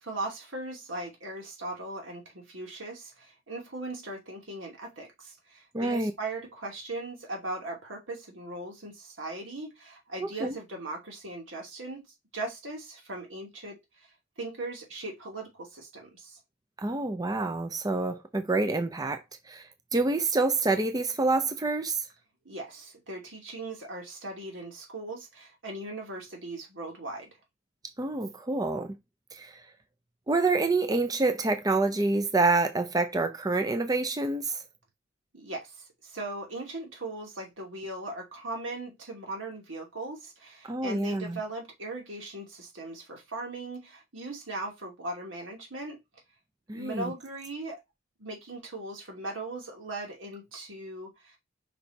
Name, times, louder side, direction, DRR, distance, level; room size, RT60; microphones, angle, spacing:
voice 1, 0.0-12.0 12.3-14.1 14.4-16.4 22.4-27.3 35.3-46.0 46.7-47.8 48.2-51.4, right 2 dB, 85° right, 2.7 m, -39 dB
voice 2, 5.7-6.1 10.2-10.6 16.8-19.2 19.5-22.0 28.0-29.0 29.3-29.6 30.3-34.6 40.6-41.4 46.7-47.1, right 3 dB, 20° right, 0.6 m, -27 dB
5.3 x 4.3 x 4.5 m
head